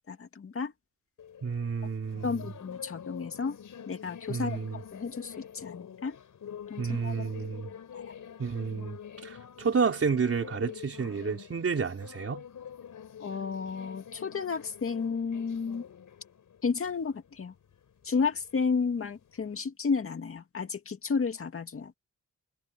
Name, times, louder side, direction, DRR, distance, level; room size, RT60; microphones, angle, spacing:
voice 1, 0.1-0.7 2.2-3.6 3.9-6.2 6.7-7.2 7.9-8.1 13.2-15.8 16.6-17.5 18.0-21.9, left 5 dB, 45° left, 2.1 m, -32 dB
sound 1, 1.2-19.6, left 8 dB, 80° left, 4.8 m, -47 dB
voice 2, 1.4-2.4 4.3-4.8 6.8-7.7 8.4-12.4, right 5 dB, 45° right, 4.1 m, -30 dB
wide cardioid pair, 150°, 31 cm